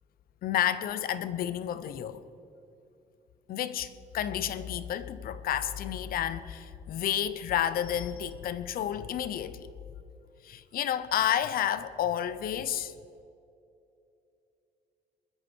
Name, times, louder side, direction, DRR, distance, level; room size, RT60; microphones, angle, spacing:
voice 1, 0.4-2.2 3.5-9.7 10.4-12.9, left 10 dB, 60° left, 0.8 m, -31 dB
20.5 x 13.0 x 4.6 m
cardioid pair, 110°, 17 cm